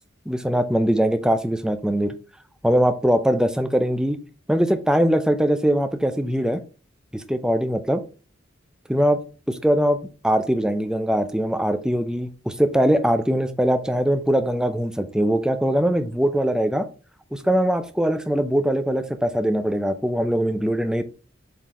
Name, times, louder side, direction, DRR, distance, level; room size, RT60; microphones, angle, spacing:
voice 1, 0.3-2.1 2.6-4.2 4.5-6.6 7.1-8.0 8.9-9.2 9.5-10.0 10.2-16.9 17.3-21.0, equal, 5° right, 9 dB, 0.5 m, -21 dB
7.7 x 4.0 x 3.1 m, 0.35 s
head